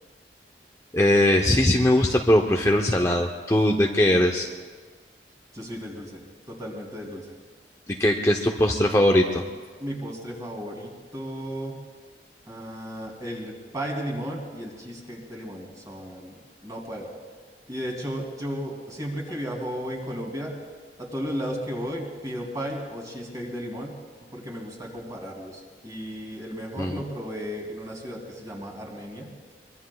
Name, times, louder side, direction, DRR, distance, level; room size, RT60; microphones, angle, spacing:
voice 1, 0.9-4.5 8.0-9.4 26.8-27.0, left 1 dB, 15° left, 1 dB, 0.7 m, -20 dB
voice 2, 5.5-7.3 9.7-11.8 12.5-17.1 17.7-20.5 21.0-23.9 24.3-29.3, equal, 20° right, -1 dB, 2.7 m, -34 dB
23.5 x 23.5 x 2.3 m, 1.5 s
head